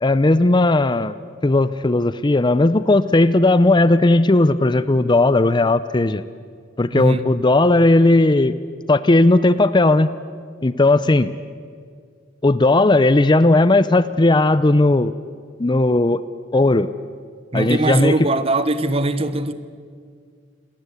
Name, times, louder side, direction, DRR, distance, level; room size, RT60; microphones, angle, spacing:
voice 1, 0.0-1.1 1.4-6.2 6.8-8.5 8.9-10.1 10.6-11.3 12.4-15.1 15.6-16.2 16.5-16.9 17.5-18.1, left 2 dB, 25° left, 0.5 m, -16 dB
voice 2, 6.9-7.3 17.5-19.5, right 2 dB, 30° right, 1.1 m, -20 dB
27.5 x 19.5 x 8.3 m
head